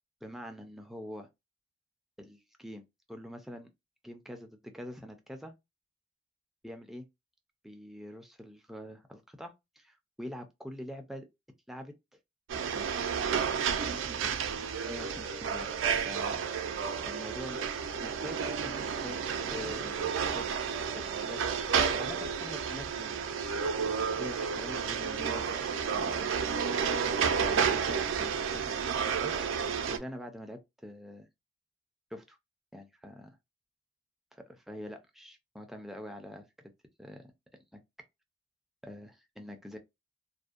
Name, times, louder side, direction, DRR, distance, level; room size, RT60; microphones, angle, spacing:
voice 1, 0.2-1.3 2.2-2.8 3.1-3.7 4.0-5.5 6.6-7.1 7.6-11.3 11.7-11.9 12.5-12.9 13.7-14.3 14.9-15.7 16.1-16.7 17.1-17.6 18.0-19.2 19.5-20.5 20.9-23.3 23.7-26.3 27.1-29.3 29.9-31.3 32.1-32.4 32.7-33.4 34.3-36.5 37.0-37.3 37.7-37.8 38.8-39.8, equal, ahead, 0.4 m, -45 dB
sound 1, 12.5-30.0, right 6 dB, 90° right, 0.4 m, -31 dB
2.5 x 2.1 x 2.3 m
head